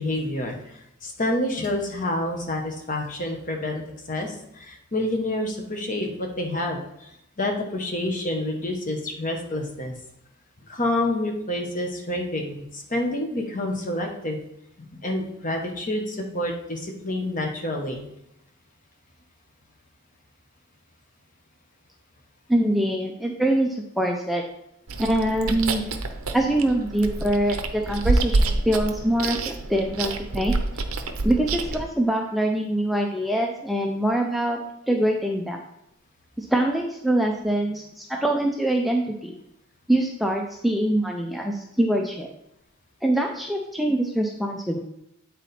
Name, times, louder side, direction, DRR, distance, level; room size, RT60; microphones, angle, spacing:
voice 1, 0.0-3.8 4.1-7.1 7.4-9.9 10.7-14.4 15.0-18.0, left 1 dB, 40° left, 2 dB, 1.2 m, -28 dB
voice 2, 22.5-24.4 25.0-25.9 26.3-30.6 31.2-34.6 34.9-35.6 36.4-39.3 39.9-42.3 43.0-44.8, right 1 dB, ahead, 1 dB, 0.5 m, -24 dB
Chewing mastication, 24.9-31.8, right 2 dB, 80° right, 0.7 m, -27 dB
8.7 x 4.0 x 4.2 m, 0.80 s
head